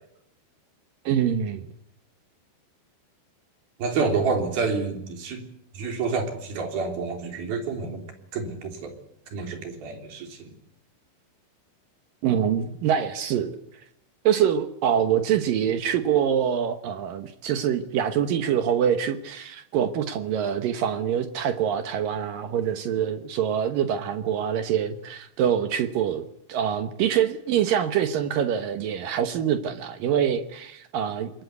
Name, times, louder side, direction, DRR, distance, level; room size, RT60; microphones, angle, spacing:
voice 1, 1.1-1.6 12.2-13.6 14.3-31.3, right 9 dB, 70° right, 2.1 m, -25 dB
voice 2, 3.8-5.4 5.7-8.1 8.3-8.9 9.3-10.5, right 4 dB, 55° right, 5.1 m, -28 dB
26.5 x 21.5 x 8.3 m
omnidirectional pair, 5.4 m